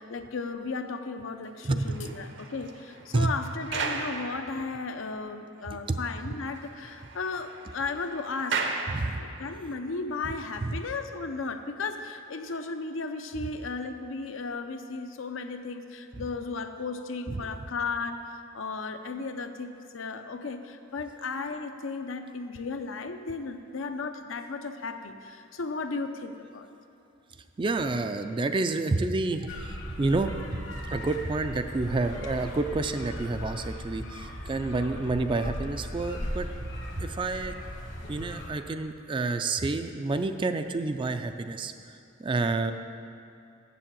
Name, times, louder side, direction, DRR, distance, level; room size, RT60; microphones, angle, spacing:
voice 1, 0.0-8.6 9.2-18.2 18.5-26.7, left 4 dB, 75° left, 7 dB, 0.6 m, -35 dB
voice 2, 1.6-2.1 3.1-3.3 5.7-6.0 8.9-9.2 10.6-10.8 16.2-16.3 17.3-17.4 27.6-30.3 30.9-36.7 37.0-37.6 38.1-42.7, right 3 dB, 25° right, 8 dB, 0.3 m, -29 dB
sound 1, 1.6-5.1 5.6-5.7 6.0-6.1 6.4-9.7, right 4 dB, 60° right, 0.8 m, -36 dB
sound 2, 29.5-38.5, equal, 60° left, 1.2 m, -38 dB
7.6 x 7.0 x 7.4 m, 2.5 s
head